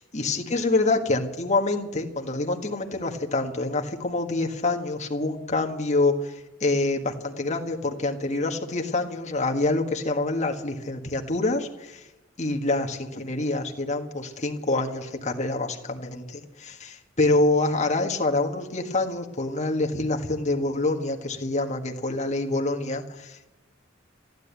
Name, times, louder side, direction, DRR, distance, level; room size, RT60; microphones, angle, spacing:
voice 1, 0.0-12.0 12.4-23.5, left 2 dB, 35° left, 2 dB, 1.6 m, -26 dB
14.5 x 11.0 x 8.3 m, 1.0 s
head